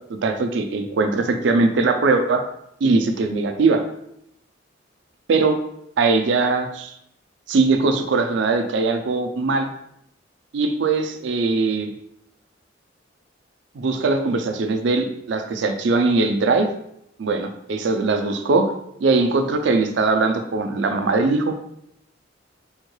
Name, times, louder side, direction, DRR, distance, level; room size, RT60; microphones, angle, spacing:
voice 1, 0.2-2.4 2.8-3.8 5.3-5.6 6.0-6.9 7.5-9.7 10.5-11.9 13.8-16.7 17.2-18.7 19.0-21.5, right 3 dB, 65° right, 6 dB, 0.4 m, -20 dB
3.5 x 2.2 x 3.0 m, 0.76 s
head